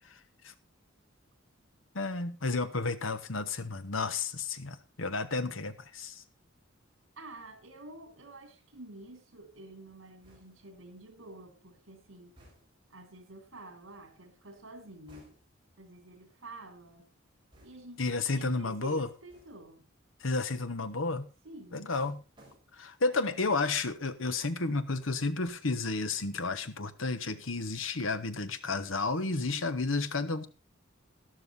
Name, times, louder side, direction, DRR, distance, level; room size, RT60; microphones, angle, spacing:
voice 1, 1.9-6.2 18.0-19.1 20.2-21.3 21.7-22.2 22.8-30.5, left 3 dB, 80° left, 1.2 m, -32 dB
voice 2, 7.2-12.3 12.9-15.3 15.8-17.1 17.6-18.0 18.3-19.8 21.4-21.9 23.1-23.5 29.3-29.7, right 1 dB, 80° right, 3.4 m, -49 dB
sound 1, 10.2-10.8 12.4-12.9 15.1-15.7 17.5-18.1 19.3-19.8 21.9-23.0 23.4-23.8, right 1 dB, 25° right, 5.3 m, -60 dB
13.0 x 12.0 x 3.8 m
head